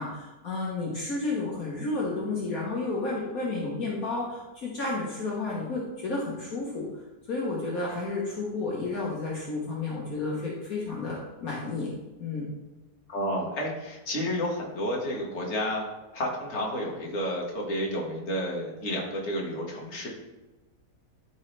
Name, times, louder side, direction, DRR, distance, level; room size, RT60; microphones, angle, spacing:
voice 1, 0.0-6.9 7.3-11.9 12.2-12.5, left 3 dB, 60° left, -4 dB, 1.6 m, -31 dB
voice 2, 13.1-15.8 16.1-20.1, equal, 40° left, -2 dB, 1.8 m, -31 dB
12.5 x 4.3 x 3.3 m, 1.1 s
omnidirectional pair, 1.8 m